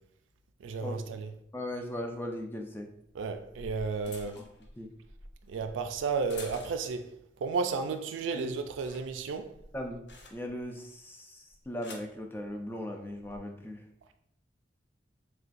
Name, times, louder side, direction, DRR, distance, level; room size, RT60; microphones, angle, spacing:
voice 1, 0.6-1.3 3.1-4.4 5.5-7.1 7.4-9.5, right 4 dB, 85° right, 0.4 m, -33 dB
voice 2, 1.5-2.9 4.4-4.5 4.8-4.9 8.3-8.5 9.7-13.8, left 1 dB, 10° left, 0.4 m, -38 dB
sound 1, 3.1-7.1 7.5-7.9 8.2-10.7 11.5-12.2 13.1-13.4, left 2 dB, 60° left, 0.7 m, -50 dB
6.5 x 2.2 x 2.5 m
head